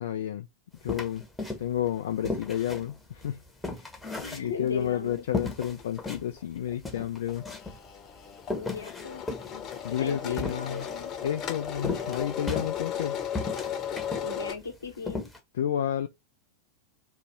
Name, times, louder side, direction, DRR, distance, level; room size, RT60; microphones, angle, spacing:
voice 1, 0.0-0.5 0.8-1.2 1.6-3.4 3.8-3.9 4.3-7.5 9.8-10.9 11.2-13.2 15.6-16.1, left 10 dB, 60° left, 0.4 m, -31 dB
sound 1, 0.9-1.9 2.2-4.9 5.3-6.2 6.6-6.7 6.8-7.8 8.4-11.0 11.8-13.0 13.3-14.3 14.6-14.7 15.0-15.4, left 3 dB, 5° left, 1.0 m, -35 dB
voice 2, 4.2-5.2 8.5-9.2 10.0-11.1 14.2-15.3, left 4 dB, 75° left, 1.1 m, -37 dB
sound 2, 5.8-6.1 6.4-6.5 6.7-14.5, left 8 dB, 30° left, 0.9 m, -36 dB
4.1 x 2.6 x 4.5 m
figure-of-eight pair, 90°, 0 cm